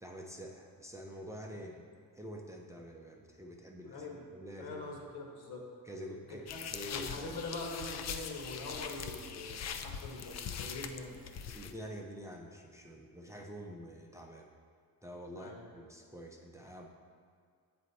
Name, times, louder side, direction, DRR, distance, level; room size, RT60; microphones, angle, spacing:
voice 1, 0.0-1.8 2.1-5.0 5.8-7.3 11.5-14.5 15.0-16.9, equal, 10° right, 0 dB, 0.5 m, -47 dB
voice 2, 3.8-4.2 4.6-5.7 6.3-6.6 6.9-11.2 15.4-15.6, left 2 dB, 70° left, 0 dB, 1.4 m, -43 dB
sound 1, 6.5-11.7, left 7 dB, 45° left, 0.4 m, -42 dB
8.0 x 4.2 x 4.1 m, 2.2 s
cardioid pair, 95°, 40 cm